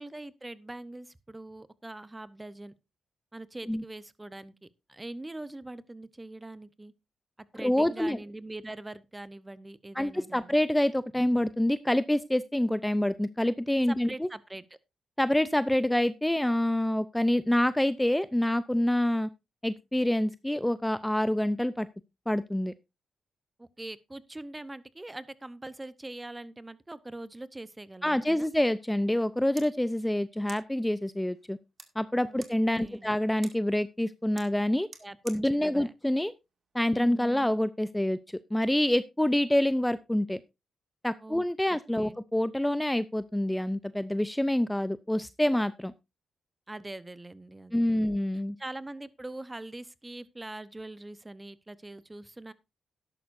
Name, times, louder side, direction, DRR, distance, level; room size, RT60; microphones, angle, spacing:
voice 1, 0.0-2.7 3.3-6.9 7.5-10.6 13.9-14.6 23.6-28.5 32.3-32.4 32.8-33.1 35.0-35.2 35.5-35.9 36.9-37.5 41.2-42.2 46.7-48.1 48.6-52.5, right 2 dB, 20° right, 0.9 m, -43 dB
voice 2, 7.6-8.2 10.0-14.3 15.2-19.3 19.6-21.9 22.3-22.7 28.0-31.6 32.0-34.9 35.2-36.3 36.7-40.4 41.0-45.9 47.7-48.6, left 1 dB, 10° left, 0.5 m, -27 dB
sound 1, 29.5-37.2, right 5 dB, 55° right, 2.1 m, -54 dB
12.5 x 11.0 x 2.6 m
cardioid pair, 65°, 0 cm